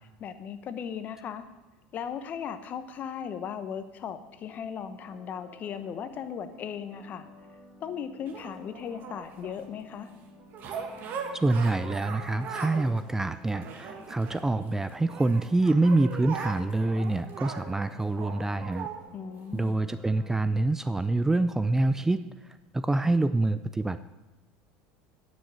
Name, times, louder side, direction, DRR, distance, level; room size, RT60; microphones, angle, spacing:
voice 1, 0.2-1.5 1.9-7.3 7.8-10.1 19.1-19.8, left 8 dB, 45° left, 11 dB, 1.0 m, -37 dB
sound 1, 5.0-20.3, left 1 dB, 35° right, 3.4 m, -52 dB
sound 2, 8.3-9.6 10.5-12.9 13.2-14.7 15.1-19.0 19.7-19.8, right 6 dB, 50° right, 1.8 m, -39 dB
voice 2, 11.3-18.9 19.5-22.2 22.7-24.0, right 2 dB, 10° right, 12 dB, 0.4 m, -26 dB
10.0 x 6.4 x 8.0 m, 1.1 s
supercardioid pair, 95°, 4 cm